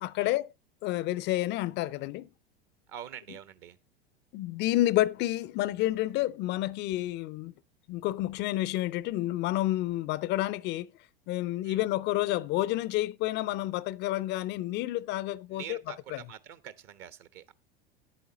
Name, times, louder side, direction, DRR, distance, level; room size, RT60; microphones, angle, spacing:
voice 1, 0.0-0.5 0.8-2.3 4.3-7.5 7.9-10.9 11.3-15.8 16.1-16.2, left 16 dB, 35° left, 0.4 m, -29 dB
voice 2, 2.9-3.8 11.6-11.8 15.5-17.5, right 9 dB, 50° right, 1.1 m, -45 dB
10.0 x 8.4 x 4.0 m
hypercardioid pair, 90°, 31 cm